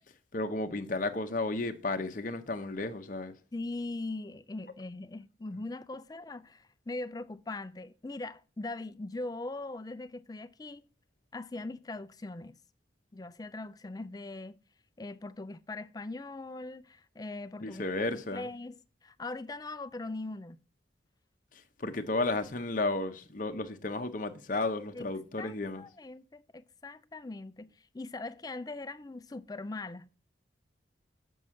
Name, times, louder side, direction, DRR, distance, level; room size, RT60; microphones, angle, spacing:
voice 1, 0.3-3.3 17.6-18.4 21.8-25.8, left 2 dB, 45° left, 0.7 m, -33 dB
voice 2, 3.5-10.9 11.3-12.6 13.1-14.6 15.0-17.8 18.1-20.6 24.9-25.1 25.4-30.1, left 2 dB, 20° left, 0.4 m, -41 dB
7.3 x 5.4 x 6.3 m
head